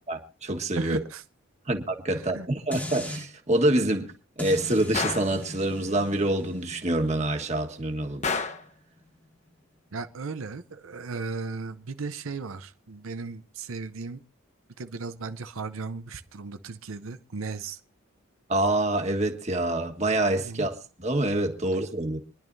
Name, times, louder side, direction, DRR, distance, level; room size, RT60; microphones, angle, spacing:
voice 1, 0.1-1.0 1.7-4.1 4.4-8.2 18.5-22.2, right 1 dB, 35° right, 1.5 m, -26 dB
voice 2, 0.8-1.2 2.1-2.5 9.9-14.2 14.8-17.8 20.4-20.6, right 4 dB, 85° right, 0.7 m, -36 dB
sound 1, 2.7-3.3 4.4-9.5 10.0-10.1, left 1 dB, 10° left, 1.3 m, -40 dB
Gunshot gunfire, 4.9-5.4 8.2-8.7, left 4 dB, 35° left, 1.1 m, -29 dB
26.0 x 10.5 x 2.7 m
head